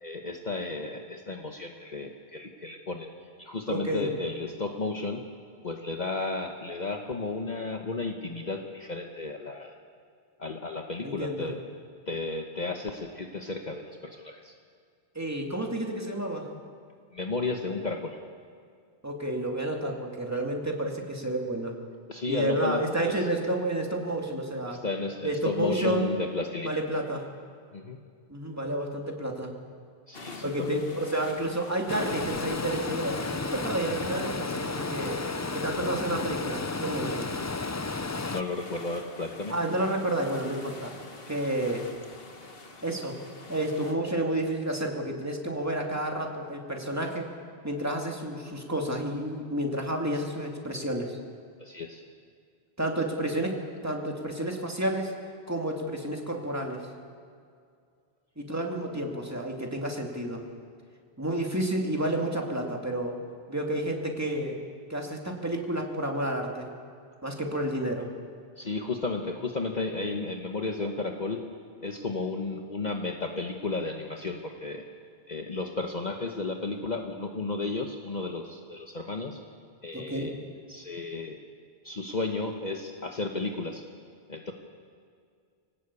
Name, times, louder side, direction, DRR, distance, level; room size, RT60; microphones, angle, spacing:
voice 1, 0.0-3.1 3.4-5.2 5.6-9.8 10.4-11.6 12.1-14.5 17.1-18.2 22.1-23.3 24.7-26.8 27.7-28.0 30.1-30.8 38.2-39.5 51.6-52.0 68.6-71.5 71.8-74.8 75.3-79.4 79.8-80.4 80.7-81.4 81.8-83.8 84.3-84.5, left 3 dB, 45° left, 3 dB, 1.3 m, -33 dB
voice 2, 3.7-4.1 11.0-11.5 15.1-16.5 19.0-21.7 22.3-24.8 25.2-26.1 26.6-27.2 28.3-29.5 30.4-33.2 33.5-35.2 35.5-37.3 39.5-40.9 41.3-41.9 42.8-43.2 43.5-47.3 47.6-51.2 52.8-55.1 55.5-56.9 58.4-60.4 61.2-63.2 63.5-64.6 64.9-66.7 67.2-68.1 79.9-80.3, right 1 dB, 15° right, 1 dB, 2.5 m, -30 dB
sound 1, 30.1-43.9, left 3 dB, 60° left, 1.8 m, -47 dB
Stream, 31.9-38.4, left 3 dB, 25° left, 0.4 m, -32 dB
23.0 x 18.5 x 8.4 m, 2.2 s
omnidirectional pair, 1.1 m